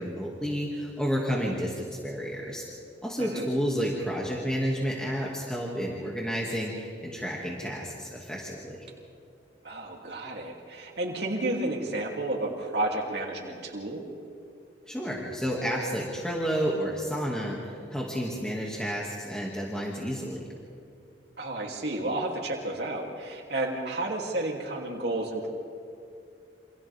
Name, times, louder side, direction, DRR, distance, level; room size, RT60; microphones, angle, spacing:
voice 1, 0.0-2.7 3.0-8.8 14.9-20.5, equal, 5° left, -4 dB, 2.2 m, -31 dB
voice 2, 9.6-14.0 21.4-25.5, right 2 dB, 65° right, -1 dB, 2.9 m, -31 dB
29.5 x 26.5 x 3.6 m, 2.5 s
head